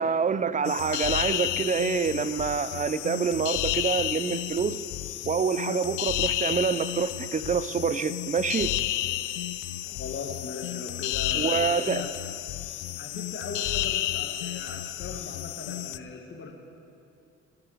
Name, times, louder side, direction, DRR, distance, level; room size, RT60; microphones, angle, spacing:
voice 1, 0.0-4.8 5.3-8.7 11.3-12.0, right 6 dB, 25° right, 15 dB, 0.5 m, -27 dB
sound 1, 0.6-16.0, left 14 dB, 85° left, 0.5 m, -31 dB
voice 2, 9.8-12.1 13.0-16.5, left 4 dB, 40° left, 1 dB, 1.9 m, -39 dB
15.5 x 10.0 x 4.9 m, 2.6 s
cardioid pair, 90°, 30 cm